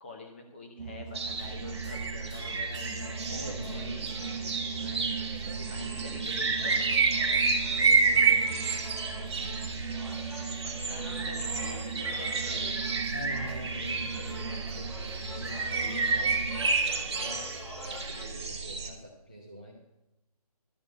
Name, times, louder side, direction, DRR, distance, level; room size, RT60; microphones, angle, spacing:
voice 1, 0.0-3.4 3.7-4.1 5.7-7.1 10.6-12.9, left 3 dB, 20° left, 2 dB, 0.9 m, -46 dB
sound 1, 0.8-16.7, right 5 dB, 85° right, 0.8 m, -39 dB
sound 2, 1.1-18.2, left 1 dB, 50° left, 2.3 m, -47 dB
sound 3, 1.1-18.9, right 4 dB, 40° right, 1.3 m, -30 dB
voice 2, 3.3-5.9 7.7-8.7 13.1-17.5 17.8-19.7, equal, 15° right, -1 dB, 0.4 m, -44 dB
11.5 x 4.4 x 7.9 m, 0.89 s
hypercardioid pair, 175°, 20 cm